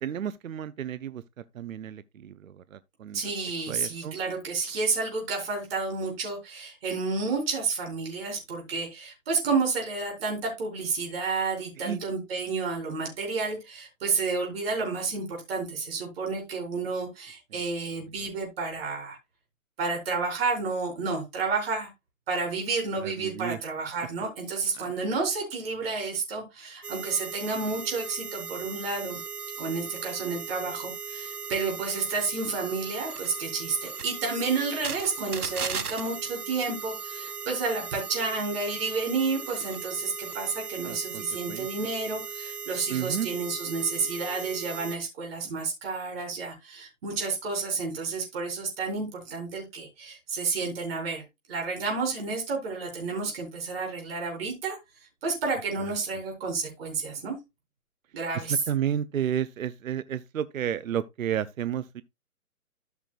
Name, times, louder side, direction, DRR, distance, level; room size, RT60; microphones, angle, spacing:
voice 1, 0.0-1.2 1.5-3.2 3.7-4.1 11.8-12.0 23.0-23.6 24.7-24.9 40.9-41.7 42.9-43.3 58.3-62.0, right 9 dB, 65° right, 0.6 m, -32 dB
voice 2, 3.1-19.2 19.8-21.9 22.3-29.2 29.6-51.2 51.5-54.8 55.2-57.4 58.1-58.6, right 4 dB, 40° right, 4.1 m, -30 dB
sound 1, 26.8-45.0, right 5 dB, 90° right, 1.0 m, -37 dB
13.0 x 6.0 x 2.4 m
figure-of-eight pair, 140°, 44 cm